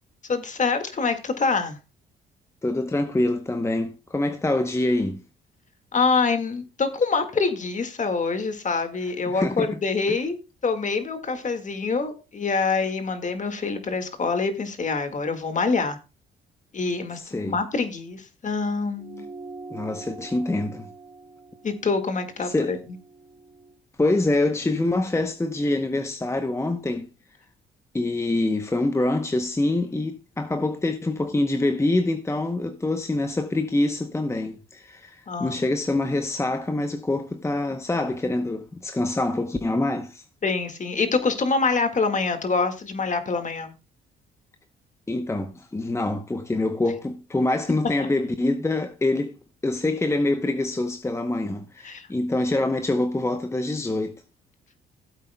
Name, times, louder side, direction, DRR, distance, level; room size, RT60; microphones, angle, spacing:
voice 1, 0.3-1.8 5.9-10.4 10.6-16.0 16.7-19.3 21.6-22.8 35.3-35.6 40.4-43.8 51.8-52.1, left 4 dB, 40° left, 1.9 m, -25 dB
voice 2, 2.6-5.2 9.3-9.8 10.1-10.2 17.2-17.6 19.7-20.9 22.4-22.7 24.0-27.1 27.9-40.2 45.1-49.3 49.6-54.1, left 2 dB, 15° left, 0.8 m, -25 dB
sound 1, 19.0-23.8, right 3 dB, 30° right, 4.2 m, -44 dB
17.0 x 8.1 x 2.3 m
cardioid pair, 90°, 20 cm